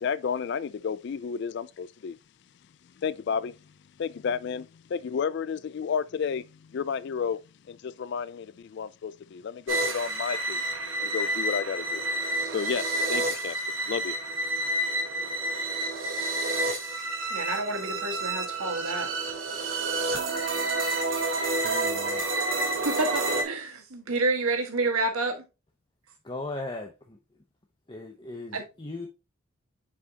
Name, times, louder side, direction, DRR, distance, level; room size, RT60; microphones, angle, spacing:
voice 1, 0.0-2.2 3.0-3.6 4.0-7.4 7.7-10.6 11.0-12.0 12.4-13.6 13.9-14.1, left 6 dB, 50° left, 0.3 m, -32 dB
sound 1, 9.7-23.4, right 2 dB, 65° right, 1.5 m, -29 dB
voice 2, 17.3-19.1 22.8-25.4 28.5-28.7, right 2 dB, 85° right, 1.6 m, -29 dB
voice 3, 21.6-22.3 26.2-27.2 27.9-29.1, left 2 dB, 20° left, 0.7 m, -38 dB
7.1 x 4.7 x 2.8 m
head